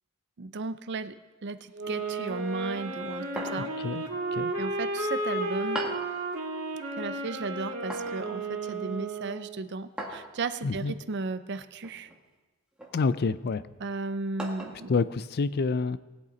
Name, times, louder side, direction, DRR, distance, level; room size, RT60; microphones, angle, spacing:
voice 1, 0.4-1.2 1.4-3.7 4.6-5.8 7.0-12.1 13.8-14.9, right 3 dB, 55° right, 11 dB, 0.6 m, -35 dB
sound 1, 1.7-9.6, right 2 dB, 90° right, 1.9 m, -33 dB
sound 2, 3.4-3.9 5.8-6.1 7.9-8.2 10.0-10.3 11.8-12.2 12.8-13.0 14.4-14.9, right 1 dB, 5° right, 1.7 m, -37 dB
voice 2, 12.9-13.6 14.9-16.0, left 4 dB, 45° left, 16 dB, 0.4 m, -27 dB
19.0 x 8.5 x 4.0 m, 1.2 s
head